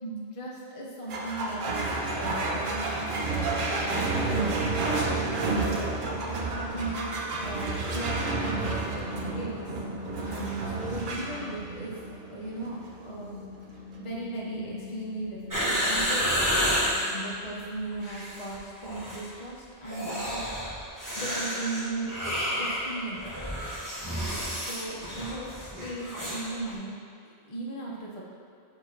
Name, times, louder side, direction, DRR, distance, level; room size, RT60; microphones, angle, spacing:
voice 1, 0.0-3.0 3.3-4.8 5.3-5.8 6.2-9.8 10.3-12.0 12.3-13.4 14.0-16.8 17.1-20.5 21.2-22.1 22.5-23.4 24.6-27.0 27.5-28.2, right 2 dB, 35° left, -4 dB, 0.8 m, -37 dB
sound 1, 1.1-17.8, right 2 dB, 55° right, 0.8 m, -31 dB
sound 2, 15.5-17.1 17.9-18.6 18.8-19.2 19.8-26.5 26.7-26.8, equal, 20° right, 1.2 m, -30 dB
7.2 x 2.9 x 4.5 m, 2.4 s
omnidirectional pair, 1.1 m